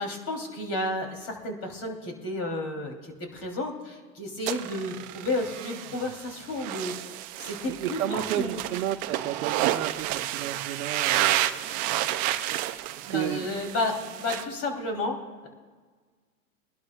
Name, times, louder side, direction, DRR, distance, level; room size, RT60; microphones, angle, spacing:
voice 1, 0.0-8.6 13.0-15.5, left 2 dB, 35° left, 2 dB, 3.4 m, -32 dB
sound 1, 4.5-14.4, right 14 dB, 20° right, 0.3 m, -30 dB
voice 2, 7.7-11.3 13.0-13.5, right 12 dB, 65° right, 1 dB, 1.0 m, -32 dB
24.0 x 11.5 x 2.4 m, 1.5 s
hypercardioid pair, 120°, 43 cm